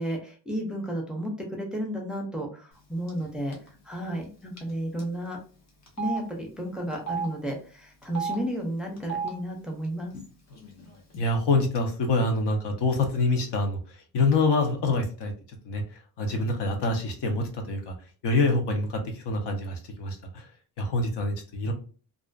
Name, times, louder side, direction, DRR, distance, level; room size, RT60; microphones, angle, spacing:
voice 1, 0.0-3.6 3.8-5.4 6.0-10.1, equal, ahead, 0 dB, 0.5 m, -32 dB
Telephone, 3.1-3.3 3.5-3.7 4.6-4.7 5.0-5.1 5.9-6.2 6.9-7.3 8.0-8.4 9.0-9.3 10.1-10.2 10.5-11.2, right 6 dB, 40° left, 0.9 m, -32 dB
voice 2, 11.2-13.8 14.1-15.3 15.7-15.8 16.2-17.9 18.2-19.0 19.3-20.4 20.8-21.7, left 3 dB, 90° left, 4 dB, 0.8 m, -25 dB
2.5 x 2.4 x 2.2 m, 0.39 s
wide cardioid pair, 155°, 40 cm